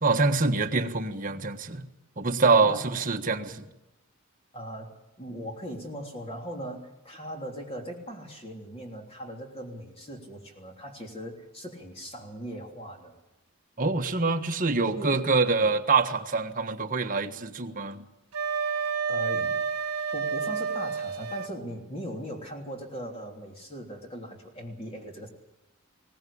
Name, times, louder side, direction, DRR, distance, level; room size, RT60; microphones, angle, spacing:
voice 1, 0.0-1.8 2.2-3.6 13.8-18.0, right 4 dB, 35° right, 4 dB, 1.4 m, -25 dB
voice 2, 2.4-2.9 4.5-4.9 5.2-13.2 15.0-15.3 15.6-15.7 19.1-19.6 20.1-25.3, equal, 25° left, 2 dB, 3.3 m, -39 dB
Wind instrument woodwind instrument, 18.3-21.5, right 6 dB, 75° right, 1.6 m, -29 dB
21.5 x 18.0 x 8.6 m, 0.96 s
head